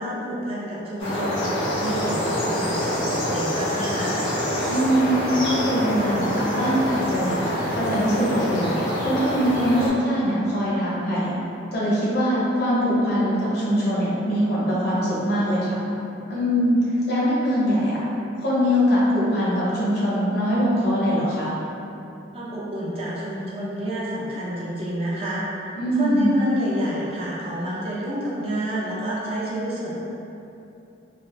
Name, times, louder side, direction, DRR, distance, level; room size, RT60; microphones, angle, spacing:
voice 1, 0.0-1.5 1.8-4.2 22.3-29.9, equal, 30° right, -7 dB, 0.5 m, -29 dB
sound 1, 1.0-9.9, equal, 85° left, 1.1 m, -26 dB
voice 2, 4.6-11.3 11.7-15.8 16.3-16.8 17.1-18.0 18.4-21.5 25.8-26.4, equal, 55° left, -8 dB, 0.8 m, -22 dB
3.2 x 2.4 x 2.5 m, 2.8 s
head